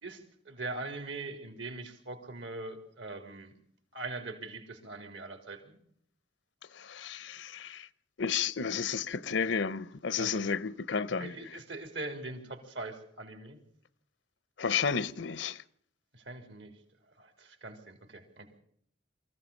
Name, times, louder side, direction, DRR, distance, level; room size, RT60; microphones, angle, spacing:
voice 1, 0.0-3.5 3.9-5.8 10.2-10.5 11.2-13.6 16.1-16.7 17.2-18.5, right 2 dB, 75° right, 3.7 m, -42 dB
voice 2, 6.7-7.9 8.2-11.6 14.6-15.6, left 6 dB, 75° left, 0.7 m, -32 dB
24.5 x 15.0 x 7.2 m
head